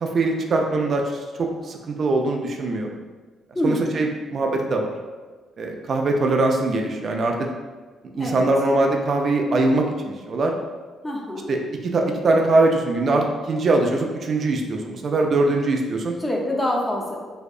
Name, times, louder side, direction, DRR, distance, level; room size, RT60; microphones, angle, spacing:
voice 1, 0.0-3.0 3.6-4.9 5.6-7.5 8.1-10.6 11.5-16.2, right 2 dB, 50° right, 2 dB, 0.3 m, -22 dB
voice 2, 3.5-3.9 8.2-8.5 11.0-11.5 16.2-17.2, left 1 dB, 15° left, -1 dB, 0.5 m, -25 dB
2.6 x 2.1 x 2.3 m, 1.4 s
cardioid pair, 90°, 0 cm